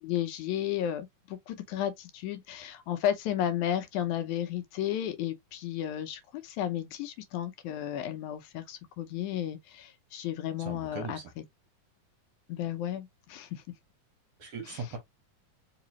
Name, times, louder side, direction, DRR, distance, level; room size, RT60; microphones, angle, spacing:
voice 1, 0.0-11.2 12.5-13.6 14.7-14.8, left 11 dB, 80° left, 2.1 m, -33 dB
voice 2, 10.6-11.3 14.4-15.0, right 4 dB, 55° right, 2.1 m, -39 dB
4.9 x 3.0 x 2.9 m
omnidirectional pair, 3.5 m